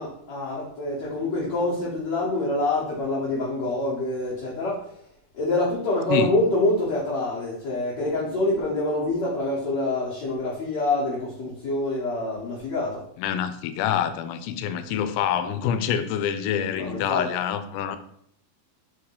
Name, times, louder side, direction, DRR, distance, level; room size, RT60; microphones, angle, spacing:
voice 1, 0.0-4.9 5.3-13.0 16.7-17.3, left 2 dB, 55° left, -8 dB, 1.9 m, -26 dB
voice 2, 13.2-18.0, left 9 dB, 85° left, 10 dB, 2.7 m, -26 dB
6.2 x 3.6 x 4.7 m, 0.70 s
omnidirectional pair, 5.0 m